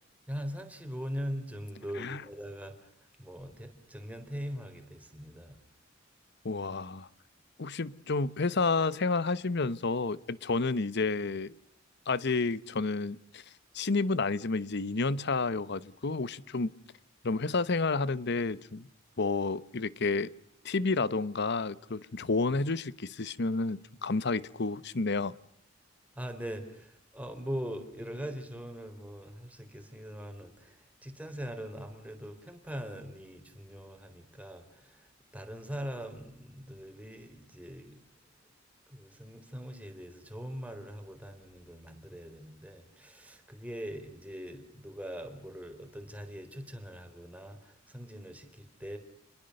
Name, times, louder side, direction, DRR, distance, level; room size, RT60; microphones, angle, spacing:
voice 1, 0.3-2.9 3.2-5.6 26.2-38.0 38.9-49.0, equal, 10° right, 6 dB, 3.9 m, -41 dB
voice 2, 6.4-7.1 7.6-11.6 12.1-13.4 13.7-16.7 17.2-18.9 19.2-20.3 20.6-25.3, left 3 dB, 60° left, 18 dB, 0.9 m, -30 dB
29.0 x 21.5 x 6.6 m, 0.70 s
head